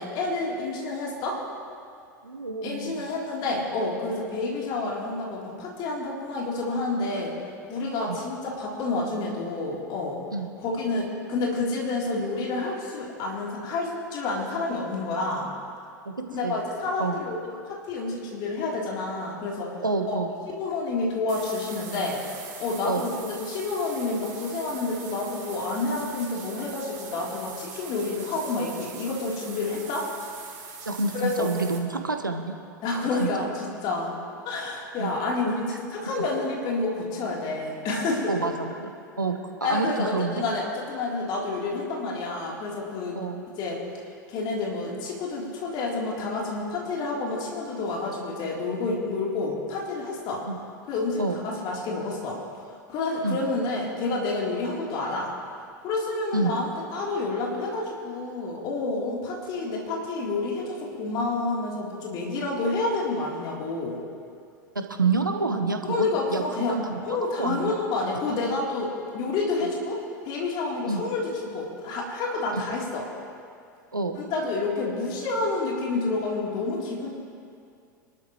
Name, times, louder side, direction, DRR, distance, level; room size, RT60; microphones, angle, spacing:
voice 1, 0.0-1.4 2.6-7.3 7.7-10.2 10.6-15.5 16.3-17.4 17.7-19.7 20.1-20.2 20.6-22.2 22.6-30.1 31.1-31.5 32.8-34.1 34.5-35.7 35.9-38.5 39.6-43.2 43.6-43.8 44.3-50.4 50.9-52.4 52.9-55.3 55.8-64.0 65.8-66.8 67.0-73.0 74.1-77.1, left 3 dB, 45° left, -3 dB, 3.6 m, -29 dB
voice 2, 2.2-3.0 8.0-8.2 10.3-10.5 16.0-16.6 17.0-17.2 19.8-20.3 22.9-23.0 30.8-32.6 33.2-33.3 35.0-35.1 35.7-35.8 36.1-36.3 38.3-38.9 39.2-40.4 43.1-43.4 50.5-50.6 51.2-51.4 53.2-53.4 56.3-56.6 64.7-67.7 70.9-71.1 72.5-72.7 73.9-74.2, right 3 dB, 85° right, 5 dB, 1.2 m, -28 dB
sound 1, 21.3-31.8, right 5 dB, 55° right, 3.5 m, -42 dB
26.5 x 13.0 x 3.2 m, 2.3 s
figure-of-eight pair, 85°, 11 cm